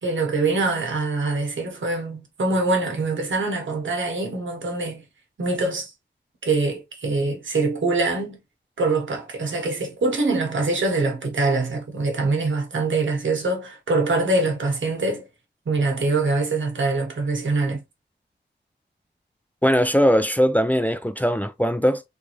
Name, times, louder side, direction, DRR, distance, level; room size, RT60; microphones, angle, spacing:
voice 1, 0.0-5.0 5.4-5.9 6.4-8.4 8.8-15.2 15.7-17.8, right 3 dB, 90° right, 1.2 m, -24 dB
voice 2, 19.6-22.0, equal, 10° left, 0.4 m, -20 dB
3.5 x 2.7 x 3.0 m
wide cardioid pair, 110°, 19 cm